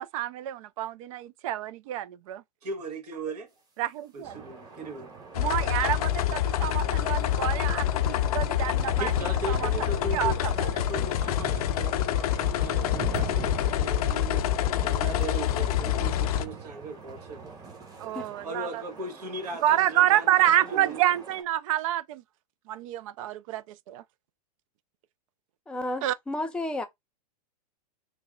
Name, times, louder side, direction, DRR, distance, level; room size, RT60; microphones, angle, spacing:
voice 1, 0.0-2.4 3.8-4.4 5.4-9.1 9.5-9.8 10.1-10.7 18.0-18.8 19.6-22.2 22.7-24.0 26.0-26.1, right 12 dB, 55° right, 0.4 m, -28 dB
voice 2, 2.6-3.5 4.1-5.1 9.0-10.4 10.8-14.5 14.8-17.7 18.4-21.0, right 2 dB, 75° right, 1.5 m, -38 dB
sound 1, 4.2-21.4, right 5 dB, 20° right, 1.0 m, -42 dB
sound 2, 5.3-16.4, left 11 dB, 65° left, 0.5 m, -26 dB
voice 3, 25.7-26.9, left 1 dB, 5° left, 0.5 m, -32 dB
3.3 x 2.1 x 3.6 m
hypercardioid pair, 130°, 20 cm